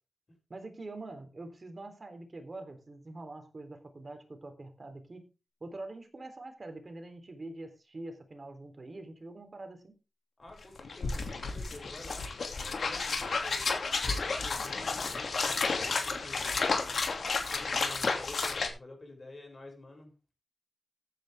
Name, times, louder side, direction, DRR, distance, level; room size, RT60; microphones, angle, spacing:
voice 1, 0.5-5.3 5.6-9.9, right 2 dB, 35° right, 6 dB, 3.6 m, -45 dB
voice 2, 10.4-12.3 12.6-17.0 17.5-20.1, left 2 dB, 35° left, 2 dB, 6.6 m, -49 dB
sound 1, 10.5-10.6 10.8-18.7, left 4 dB, 65° left, 2.8 m, -32 dB
15.0 x 9.4 x 3.6 m, 0.30 s
wide cardioid pair, 135°, 0 cm